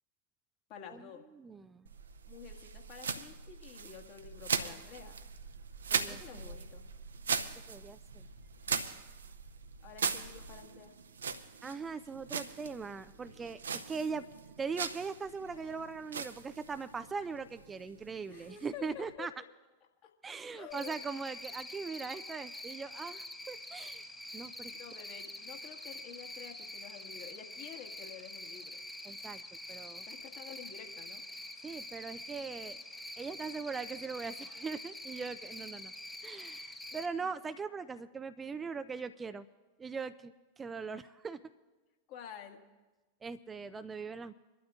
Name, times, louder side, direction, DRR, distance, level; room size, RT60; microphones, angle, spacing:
voice 1, 0.7-1.2 2.3-5.2 6.1-6.8 9.8-10.9 18.3-19.3 20.0-20.1 20.5-20.9 24.7-28.8 30.1-31.2 36.9-37.3 42.1-42.6, left 8 dB, 45° left, 2 dB, 1.7 m, -50 dB
voice 2, 1.4-1.8 5.9-6.4 7.7-8.3 11.6-14.3 14.6-19.3 20.2-24.1 24.3-24.7 29.1-29.4 29.7-30.0 31.6-32.8 33.2-35.9 36.2-39.5 39.8-41.4 43.2-44.3, right 5 dB, 15° right, 12 dB, 0.4 m, -40 dB
sound 1, 1.9-19.1, right 6 dB, 70° right, 0.7 m, -40 dB
Cricket, 20.7-37.1, left 1 dB, 5° left, 0.9 m, -46 dB
26.5 x 12.0 x 2.4 m, 1.2 s
figure-of-eight pair, 90°, 0 cm